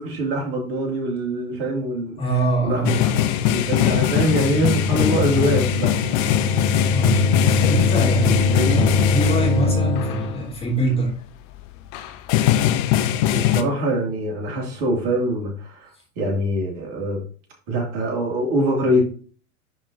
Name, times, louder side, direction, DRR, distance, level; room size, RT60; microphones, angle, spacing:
voice 1, 0.0-2.2 2.6-3.1 3.5-6.3 8.2-8.9 13.3-15.9 16.2-17.2 17.7-19.0, right 1 dB, 45° right, -1 dB, 2.9 m, -24 dB
voice 2, 2.2-3.1 6.9-11.1, right 2 dB, 15° left, -1 dB, 3.0 m, -24 dB
sound 1, 2.8-9.7 10.0-10.3 11.1-11.2 11.6-11.7 11.9-13.6, left 12 dB, 30° left, 0.6 m, -21 dB
sound 2, 3.7-10.5, left 3 dB, 80° left, 2.7 m, -23 dB
10.5 x 4.5 x 2.9 m, 0.40 s
figure-of-eight pair, 100°, 42 cm